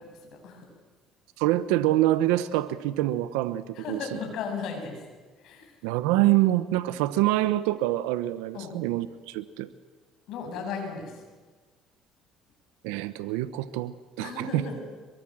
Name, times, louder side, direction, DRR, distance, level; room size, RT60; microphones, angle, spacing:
voice 1, 0.3-0.7 3.7-5.0 5.4-5.7 8.5-8.8 10.3-11.2 14.2-14.8, left 5 dB, 65° left, 3 dB, 7.7 m, -35 dB
voice 2, 1.4-4.2 5.8-9.7 12.8-14.6, right 15 dB, 85° right, 14 dB, 1.0 m, -26 dB
23.5 x 22.5 x 7.7 m, 1.4 s
supercardioid pair, 85°, 0 cm